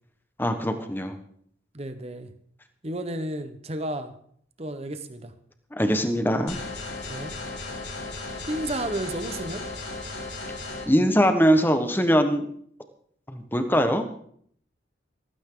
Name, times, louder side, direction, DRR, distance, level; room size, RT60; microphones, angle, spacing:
voice 1, 0.4-1.1 5.7-6.6 10.9-12.5 13.3-14.1, equal, 10° left, 7 dB, 1.3 m, -22 dB
voice 2, 1.7-2.3 2.8-4.1 4.6-5.3 7.1-7.3 8.5-9.6, right 1 dB, 30° right, 9 dB, 1.1 m, -32 dB
sound 1, 6.5-10.9, left 2 dB, 70° left, 3.3 m, -35 dB
15.5 x 15.0 x 3.9 m, 0.63 s
head